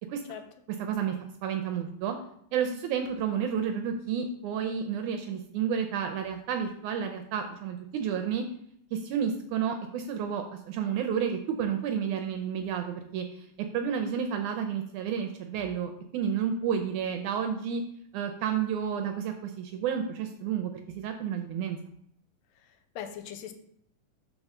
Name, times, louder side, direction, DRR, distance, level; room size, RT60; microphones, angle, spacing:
voice 1, 0.8-1.2 1.4-2.2 2.5-8.5 8.9-13.5 13.7-17.8 18.1-21.8, right 7 dB, 80° right, 5 dB, 1.8 m, -31 dB
voice 2, 22.6-23.5, left 9 dB, 90° left, 8 dB, 2.3 m, -41 dB
5.4 x 4.1 x 6.0 m, 0.70 s
omnidirectional pair, 4.0 m